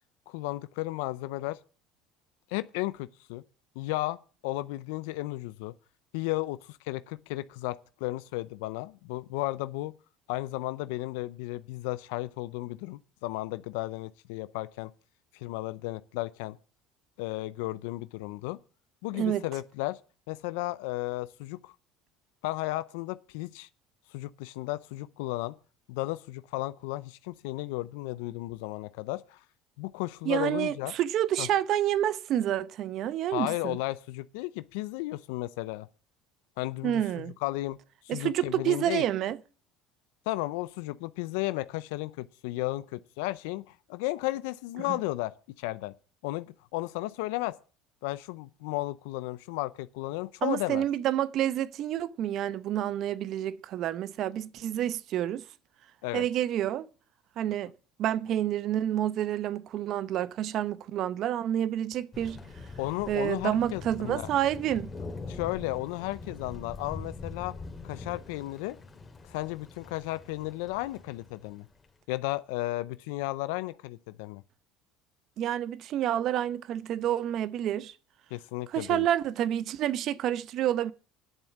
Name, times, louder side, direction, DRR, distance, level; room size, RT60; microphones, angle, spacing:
voice 1, 0.3-1.6 2.5-3.4 3.8-4.2 4.4-5.7 6.1-9.9 10.3-14.9 15.3-16.6 17.2-18.6 19.0-20.0 20.3-21.7 22.4-23.7 24.1-25.5 25.9-29.4 29.8-30.9 31.4-31.5 33.3-35.9 36.6-37.8 38.0-39.0 40.3-45.3 45.6-45.9 46.2-47.6 48.0-50.9 56.0-56.3 62.8-64.3 65.3-67.5 67.8-68.8 69.3-71.7 72.1-74.4 78.3-79.1, left 19 dB, 80° left, 0.5 m, -34 dB
voice 2, 30.2-33.8 36.8-37.3 38.1-39.4 44.9-45.0 50.4-55.4 56.1-56.8 57.4-57.7 58.0-62.4 63.1-64.9 75.4-77.9 78.7-80.9, right 11 dB, 55° right, 0.9 m, -29 dB
Thunder, 62.1-71.8, left 3 dB, 25° left, 2.5 m, -43 dB
10.5 x 7.2 x 8.3 m
supercardioid pair, 85°, 0 cm